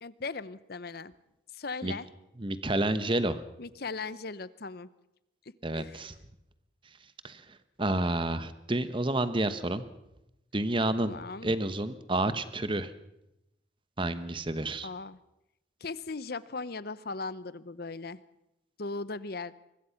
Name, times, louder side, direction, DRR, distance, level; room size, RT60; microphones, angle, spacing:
voice 1, 0.0-1.1 1.5-2.1 3.6-4.9 5.7-6.0 11.0-11.5 14.8-15.2 15.8-18.2 18.8-19.5, left 3 dB, 50° left, 17 dB, 0.8 m, -38 dB
voice 2, 2.4-3.4 5.6-6.1 7.2-7.4 7.8-9.8 10.5-11.1 11.4-12.9 14.0-14.9, right 2 dB, 25° right, 12 dB, 1.0 m, -29 dB
23.5 x 21.0 x 5.8 m, 0.89 s
head